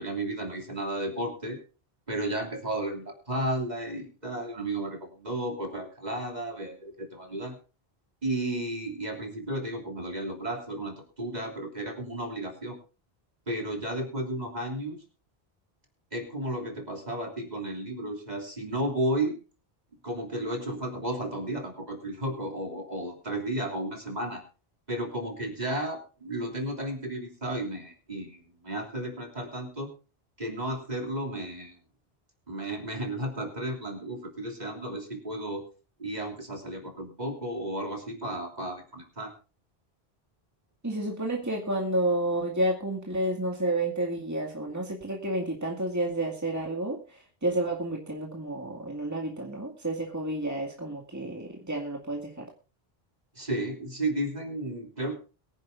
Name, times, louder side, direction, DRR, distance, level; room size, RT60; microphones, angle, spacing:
voice 1, 0.0-1.6 2.1-7.6 8.2-12.8 13.5-15.0 16.1-19.3 20.0-24.4 24.9-29.9 30.4-31.8 32.5-35.7 36.0-39.3 53.4-55.1, right 1 dB, 40° right, 2 dB, 3.3 m, -33 dB
voice 2, 40.8-52.5, right 1 dB, 15° right, 0 dB, 2.2 m, -30 dB
22.5 x 10.5 x 2.6 m, 0.34 s
omnidirectional pair, 1.1 m